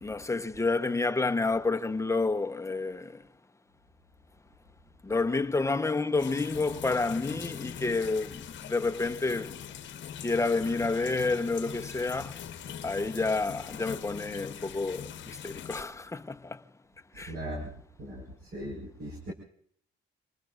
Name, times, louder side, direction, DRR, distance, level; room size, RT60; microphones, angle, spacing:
voice 1, 0.0-3.2 5.0-9.6 10.2-12.4 12.8-16.6 17.1-17.4, left 3 dB, 15° left, 1.0 m, -29 dB
sound 1, 6.2-15.8, left 9 dB, 65° left, 1.0 m, -42 dB
voice 2, 17.1-19.3, equal, 55° right, 4.8 m, -39 dB
26.5 x 20.5 x 2.5 m
cardioid pair, 90°, 20 cm